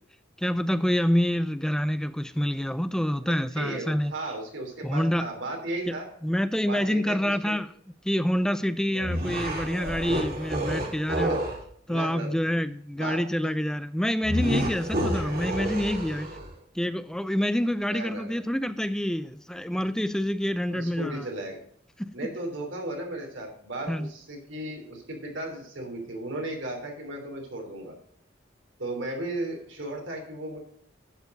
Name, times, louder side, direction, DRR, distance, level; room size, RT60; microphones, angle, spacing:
voice 1, 0.4-4.1 4.8-5.3 5.9-6.0 6.2-7.7 8.1-11.4 11.9-16.3 16.7-21.2 22.0-22.1 23.9-24.1, equal, 5° left, 0.3 m, -27 dB
voice 2, 3.2-6.1 6.6-7.6 8.9-9.2 11.1-11.4 11.9-12.4 12.9-13.5 15.2-15.5 17.9-18.4 20.7-21.6 22.1-27.9 28.8-30.6, right 1 dB, 85° right, 3.1 m, -36 dB
sound 1, 9.0-11.6 14.2-16.5, right 1 dB, 55° right, 3.2 m, -29 dB
11.5 x 4.8 x 6.5 m
head